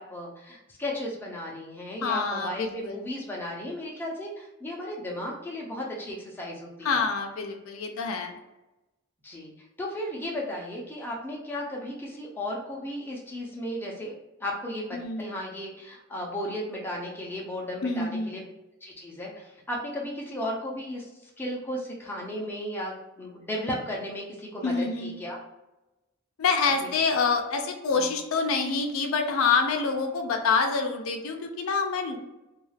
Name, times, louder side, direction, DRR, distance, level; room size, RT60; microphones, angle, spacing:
voice 1, 0.0-7.0 9.2-9.5 9.8-14.1 14.4-18.4 18.8-21.1 21.4-25.4 26.8-26.9 28.0-28.1, left 1 dB, 10° left, -3 dB, 0.5 m, -35 dB
voice 2, 2.0-3.0 6.8-8.4 14.9-15.3 17.8-18.3 24.6-25.2 26.4-32.2, left 4 dB, 80° left, 3 dB, 0.4 m, -26 dB
2.3 x 2.3 x 3.2 m, 0.99 s
head